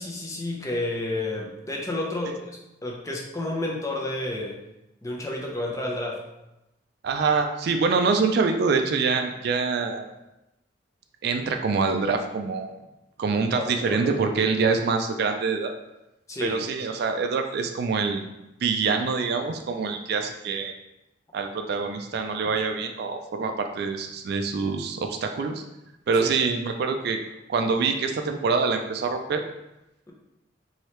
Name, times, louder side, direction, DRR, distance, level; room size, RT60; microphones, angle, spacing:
voice 1, 0.0-2.5 2.8-4.6 5.0-6.2 13.5-14.1 16.3-16.6 26.2-26.3, left 2 dB, 20° left, -1 dB, 0.5 m, -30 dB
voice 2, 7.0-10.1 11.2-12.7 13.2-15.7 16.4-18.3 18.6-20.7 21.3-25.6 26.1-27.2 27.5-29.4, right 4 dB, 60° right, 5 dB, 0.3 m, -25 dB
3.0 x 2.7 x 3.2 m, 0.92 s
head